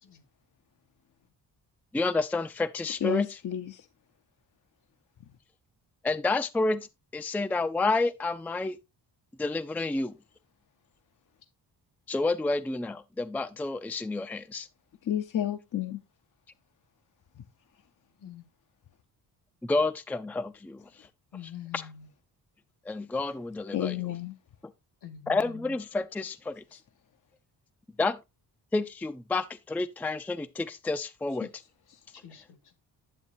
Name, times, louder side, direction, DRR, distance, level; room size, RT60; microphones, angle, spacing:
voice 1, 1.9-3.3 6.0-6.9 7.1-8.8 9.4-10.2 12.1-14.7 19.6-20.8 21.7-21.9 22.9-23.9 25.3-26.6 28.0-28.2 28.7-31.5, left 3 dB, 5° left, 0.4 m, -29 dB
voice 2, 3.0-3.9 15.0-16.0 17.4-17.5 23.7-24.3 26.7-26.8 31.4-31.5 31.9-32.0, left 11 dB, 50° left, 0.7 m, -31 dB
voice 3, 21.3-22.1 25.0-25.8 32.1-32.7, left 9 dB, 70° left, 1.8 m, -45 dB
9.0 x 7.2 x 2.6 m
cardioid pair, 65°, 42 cm